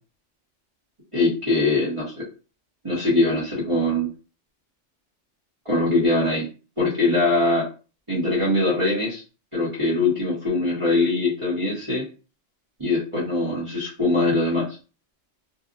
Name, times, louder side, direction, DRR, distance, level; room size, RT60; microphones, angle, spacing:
voice 1, 1.1-2.1 2.8-4.1 5.6-6.5 6.8-7.6 8.1-9.2 9.5-12.0 12.8-14.6, left 2 dB, 25° right, -9 dB, 1.0 m, -22 dB
2.7 x 2.3 x 2.5 m, 0.34 s
omnidirectional pair, 1.3 m